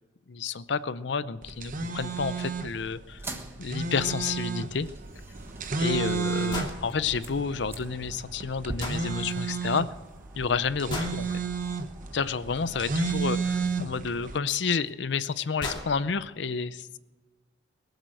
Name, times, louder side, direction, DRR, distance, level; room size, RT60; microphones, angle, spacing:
voice 1, 0.3-3.2 3.6-4.9 5.8-9.9 10.4-11.4 12.1-17.0, left 5 dB, 65° left, 15 dB, 0.6 m, -30 dB
sound 1, 1.4-14.4, right 4 dB, 45° right, 0.9 m, -32 dB
sound 2, 3.1-12.7, right 1 dB, 15° right, 1.4 m, -46 dB
sound 3, 6.5-6.8 8.8-9.0 10.9-11.2 13.4-13.5 14.9-15.0 15.3-15.4 15.6-15.9, left 2 dB, 25° left, 2.7 m, -34 dB
22.5 x 8.1 x 7.7 m, 1.2 s
head